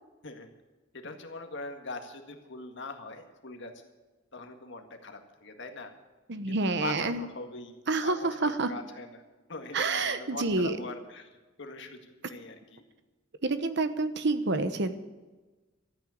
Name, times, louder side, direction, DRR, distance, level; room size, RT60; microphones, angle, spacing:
voice 1, 0.9-3.7 4.3-5.9 6.5-7.8 8.0-9.2 9.5-11.3 11.6-12.8, left 3 dB, 65° left, 5 dB, 1.9 m, -42 dB
voice 2, 6.3-7.2 7.9-8.2 8.4-8.7 9.7-10.8 13.4-14.9, right 3 dB, 60° right, 10 dB, 1.1 m, -28 dB
13.5 x 9.1 x 9.4 m, 1.2 s
head